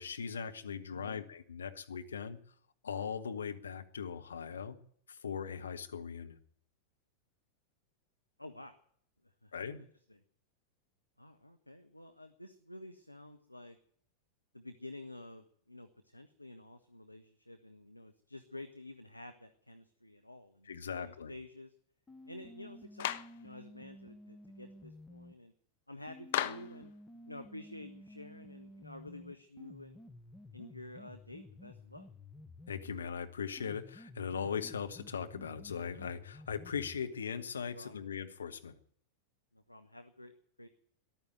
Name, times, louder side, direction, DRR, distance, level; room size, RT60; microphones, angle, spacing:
voice 1, 0.0-2.4 2.8-4.8 5.1-6.4 9.5-9.8 20.6-21.3 32.7-38.7, left 6 dB, 70° left, 7 dB, 1.3 m, -39 dB
voice 2, 0.9-1.2 8.4-8.8 9.4-10.2 11.2-13.8 14.5-21.7 22.3-25.5 25.9-26.9 27.3-30.0 30.5-32.1 37.7-38.1 39.5-40.7, left 1 dB, 85° left, 7 dB, 0.9 m, -50 dB
sound 1, 22.1-25.4 26.1-33.0 33.6-37.0, left 1 dB, 10° left, 1.0 m, -53 dB
Clapping, 23.0-23.4 26.3-26.8, left 13 dB, 55° left, 0.7 m, -34 dB
14.0 x 11.0 x 9.3 m, 0.63 s
figure-of-eight pair, 90°, 0 cm